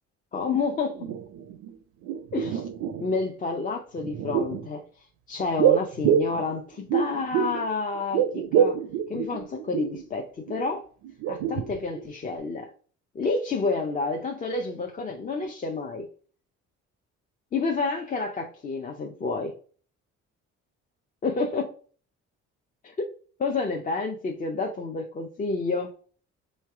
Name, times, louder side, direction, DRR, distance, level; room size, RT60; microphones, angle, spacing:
voice 1, 0.3-1.1 2.3-2.7 3.0-8.8 9.1-10.8 11.3-12.7 13.1-16.1 17.5-19.5 21.2-21.7 22.8-22.9 23.4-25.9, left 4 dB, 30° left, 0.4 m, -29 dB
sound 1, 0.5-0.6 0.9-1.7 2.0-3.2 4.0-4.7 5.6-7.7 7.9-10.0 10.5-10.6 11.0-12.1 12.3-12.4, right 9 dB, 75° right, 0.5 m, -26 dB
3.2 x 3.2 x 3.4 m
cardioid pair, 110°, 29 cm